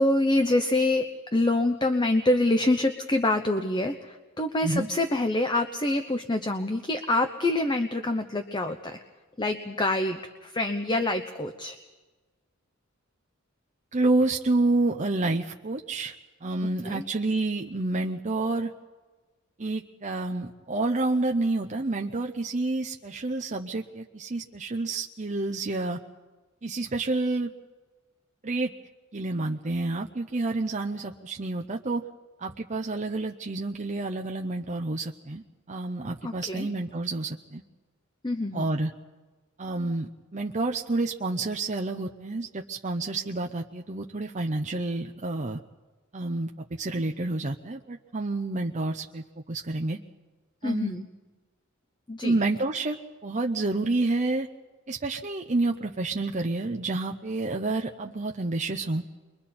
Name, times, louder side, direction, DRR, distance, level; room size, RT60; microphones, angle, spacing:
voice 1, 0.0-9.0 9.4-11.8 16.8-17.0 36.2-36.7 38.2-38.7 50.6-51.1 52.1-52.4, left 2 dB, 20° left, 7 dB, 0.8 m, -26 dB
voice 2, 13.9-16.1 16.4-18.7 19.6-26.0 26.6-27.5 28.4-28.7 29.1-32.0 32.4-35.4 35.7-37.6 38.5-38.9 39.6-45.6 46.1-46.5 46.8-49.2 49.5-50.0 50.6-50.9 52.2-53.0 53.2-54.5 54.9-59.0, right 2 dB, 35° right, 2 dB, 0.7 m, -29 dB
30.0 x 23.0 x 4.3 m, 1.3 s
head